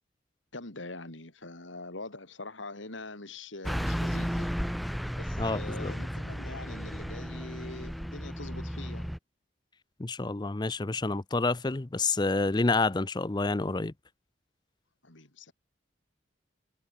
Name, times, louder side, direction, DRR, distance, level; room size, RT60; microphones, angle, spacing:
voice 1, 0.5-4.5 5.2-9.1 15.0-15.5, left 2 dB, 85° left, 3.8 m, -43 dB
Car passing by / Truck, 3.6-9.2, equal, ahead, 3.3 m, -34 dB
voice 2, 5.4-5.9 10.0-13.9, left 3 dB, 25° left, 0.6 m, -28 dB
head